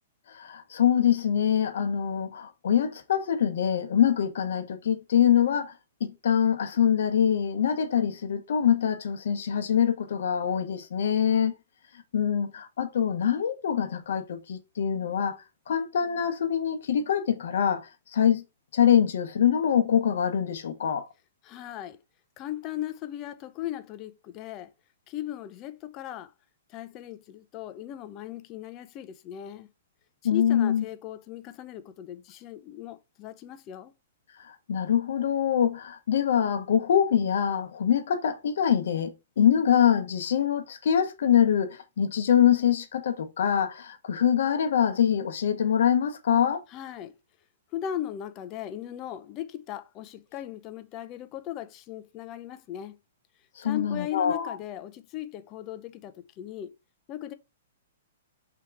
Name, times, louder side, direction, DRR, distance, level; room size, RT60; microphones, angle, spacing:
voice 1, 0.3-5.7 6.0-11.5 12.1-15.4 15.7-18.4 18.7-21.1 30.2-30.8 34.4-46.6 53.6-54.6, left 9 dB, 70° left, 0.9 m, -24 dB
voice 2, 21.4-22.0 22.4-24.7 25.1-26.3 26.7-29.7 30.3-33.9 46.7-47.1 47.7-53.0 53.6-56.7 57.1-57.3, left 12 dB, 30° left, 0.5 m, -37 dB
3.5 x 2.9 x 4.6 m
hypercardioid pair, 135°, 0 cm